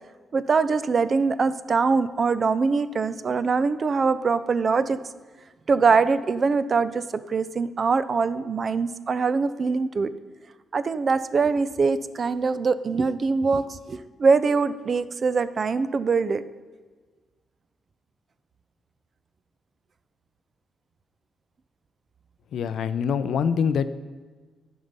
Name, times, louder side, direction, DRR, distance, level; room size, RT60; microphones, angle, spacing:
voice 1, 0.3-5.0 5.7-10.1 10.7-16.4, right 4 dB, 35° right, 15 dB, 0.3 m, -23 dB
voice 2, 22.5-23.9, left 7 dB, 70° left, 14 dB, 0.4 m, -24 dB
11.0 x 5.3 x 5.3 m, 1.4 s
wide cardioid pair, 175°, 0 cm